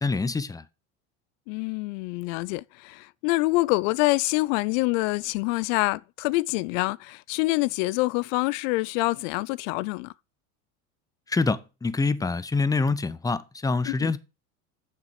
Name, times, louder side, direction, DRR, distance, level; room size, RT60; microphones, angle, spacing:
voice 1, 0.0-0.6 11.3-14.2, left 3 dB, 10° left, 0.6 m, -26 dB
voice 2, 1.5-10.1 13.9-14.1, left 22 dB, 60° left, 0.5 m, -26 dB
7.7 x 5.9 x 6.6 m
hypercardioid pair, 85°, 45 cm